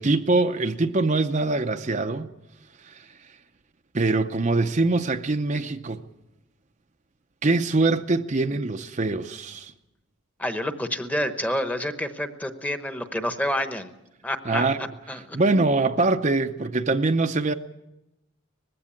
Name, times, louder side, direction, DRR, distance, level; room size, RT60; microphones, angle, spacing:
voice 1, 0.0-2.3 2.8-3.0 3.9-6.0 7.4-9.7 14.5-14.8 15.1-17.5, right 3 dB, 35° right, 0.6 m, -23 dB
voice 2, 10.4-13.9 14.2-14.7 15.1-15.4, left 1 dB, 5° left, 1.0 m, -28 dB
20.0 x 15.5 x 8.9 m
head